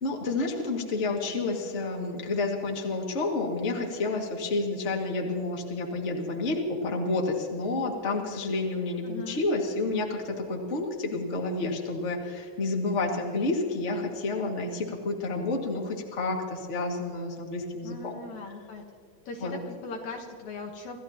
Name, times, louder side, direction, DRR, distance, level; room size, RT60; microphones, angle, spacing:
voice 1, 0.0-18.2 19.4-19.6, left 3 dB, 25° left, 0 dB, 2.0 m, -30 dB
voice 2, 9.0-9.4 17.8-18.8 19.3-21.0, left 4 dB, 65° left, 2 dB, 2.5 m, -39 dB
27.5 x 15.5 x 3.0 m, 2.3 s
omnidirectional pair, 3.9 m